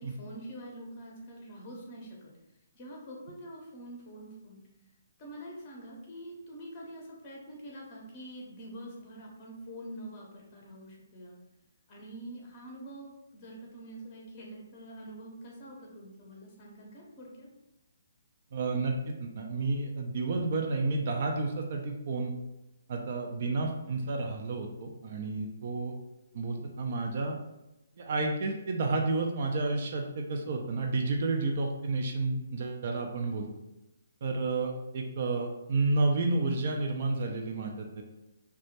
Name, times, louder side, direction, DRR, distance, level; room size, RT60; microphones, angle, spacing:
voice 1, 0.0-2.3 2.7-4.6 5.2-11.3 11.9-17.5, right 1 dB, 30° left, -2 dB, 0.6 m, -45 dB
voice 2, 18.5-22.3 22.9-25.9 26.3-27.3 28.0-33.5 34.2-38.0, right 3 dB, 50° right, 2 dB, 0.3 m, -31 dB
2.2 x 2.0 x 2.8 m, 0.95 s
figure-of-eight pair, 140°, 0 cm